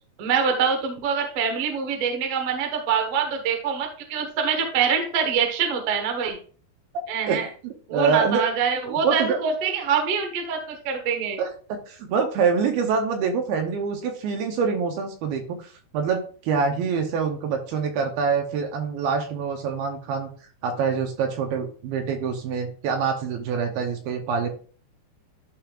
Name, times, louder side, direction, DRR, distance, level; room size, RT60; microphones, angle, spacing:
voice 1, 0.2-6.4 7.1-7.5 7.9-11.4, right 6 dB, 60° right, 4 dB, 1.6 m, -25 dB
voice 2, 7.6-8.4 8.8-9.4 11.4-20.3 20.6-24.5, right 5 dB, 75° right, 5 dB, 2.6 m, -25 dB
11.5 x 5.2 x 2.4 m, 0.41 s
omnidirectional pair, 4.6 m